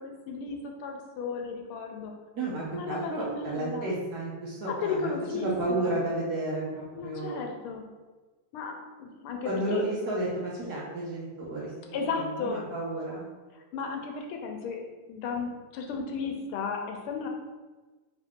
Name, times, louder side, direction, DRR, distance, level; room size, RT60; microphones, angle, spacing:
voice 1, 0.0-2.1 2.7-3.9 4.7-6.0 6.9-7.8 8.5-8.7 9.0-9.8 11.9-12.7 13.7-17.3, left 4 dB, 80° left, 3 dB, 1.4 m, -34 dB
voice 2, 2.3-7.5 9.4-13.3, right 1 dB, 60° right, -6 dB, 1.1 m, -32 dB
3.7 x 3.3 x 3.6 m, 1.3 s
omnidirectional pair, 2.4 m